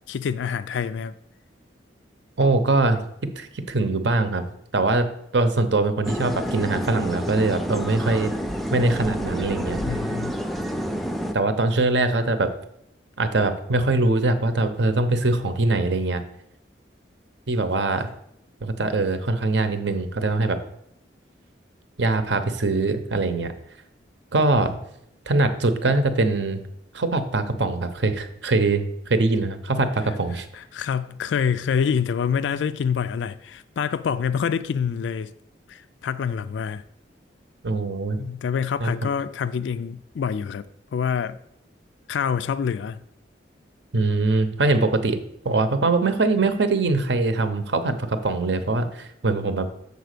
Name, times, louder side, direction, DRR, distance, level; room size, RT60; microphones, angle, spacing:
voice 1, 0.1-1.1 9.8-10.4 30.5-35.3 35.7-36.8 38.2-40.6 40.9-41.4 42.1-43.0, left 7 dB, 80° left, 0.3 m, -26 dB
voice 2, 2.4-3.0 3.4-4.4 4.7-5.1 5.3-8.3 8.7-9.8 11.3-12.5 13.2-16.2 17.5-18.1 18.6-20.6 22.0-23.5 24.3-24.8 25.3-26.6 26.9-30.5 37.6-38.2 38.8-38.9 43.9-45.2 45.4-49.7, right 2 dB, 70° right, 0.8 m, -22 dB
sound 1, 6.0-11.3, equal, ahead, 0.4 m, -28 dB
6.9 x 4.0 x 6.6 m
head